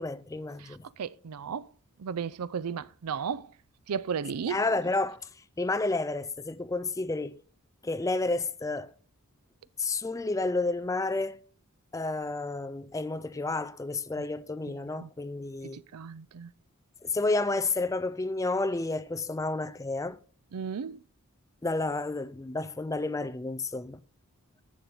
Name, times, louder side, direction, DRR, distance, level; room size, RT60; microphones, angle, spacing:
voice 1, 0.0-0.8 4.4-5.2 5.6-7.4 7.8-8.9 9.8-11.4 11.9-15.8 17.0-20.2 21.6-24.0, left 3 dB, 15° left, 0.4 m, -30 dB
voice 2, 1.0-1.7 2.0-3.5 3.9-4.6 14.7-15.1 15.7-16.5 20.5-21.0, right 7 dB, 85° right, 0.5 m, -34 dB
11.0 x 7.6 x 3.9 m
head